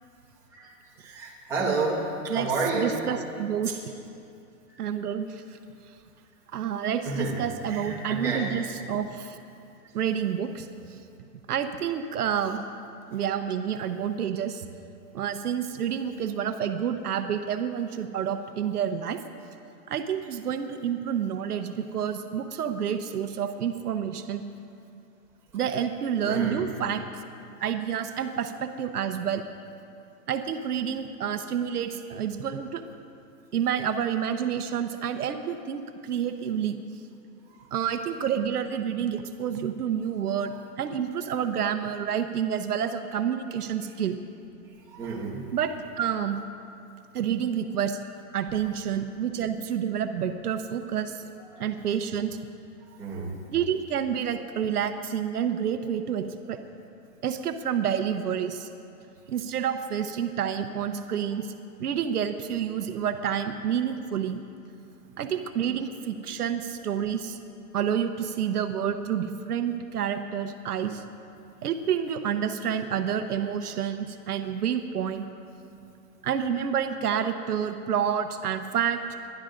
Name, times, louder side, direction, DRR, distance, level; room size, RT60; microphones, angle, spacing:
voice 1, 1.0-2.9 3.6-3.7 7.0-7.3 7.7-8.5 26.2-26.6 44.9-45.4 51.5-51.6 53.0-53.3 75.6-75.7, right 3 dB, 5° right, -7 dB, 1.4 m, -30 dB
voice 2, 2.3-3.9 4.8-5.6 6.5-9.4 9.9-10.7 11.5-12.6 13.1-14.6 15.1-19.2 19.9-24.4 25.5-27.0 27.6-29.4 30.3-32.8 33.5-36.8 37.7-44.1 45.5-45.7 46.0-46.4 47.1-48.0 48.3-51.2 51.6-52.4 53.5-56.6 57.2-58.7 59.3-61.5 61.8-64.4 65.2-67.4 67.7-71.0 71.6-75.3 76.2-79.0, right 8 dB, 65° right, 8 dB, 0.9 m, -29 dB
29.0 x 12.5 x 2.6 m, 2.6 s
hypercardioid pair, 170°, 49 cm